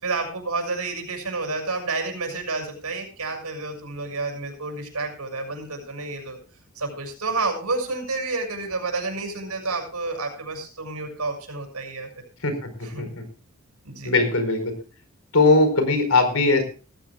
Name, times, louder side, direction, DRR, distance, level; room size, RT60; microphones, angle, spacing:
voice 1, 0.0-6.4 6.7-12.1 12.8-13.1 13.8-14.2, right 3 dB, 85° right, 4 dB, 6.4 m, -30 dB
voice 2, 14.0-14.7 15.3-16.6, left 3 dB, 70° left, 8 dB, 4.8 m, -19 dB
18.5 x 15.0 x 2.4 m, 0.36 s
head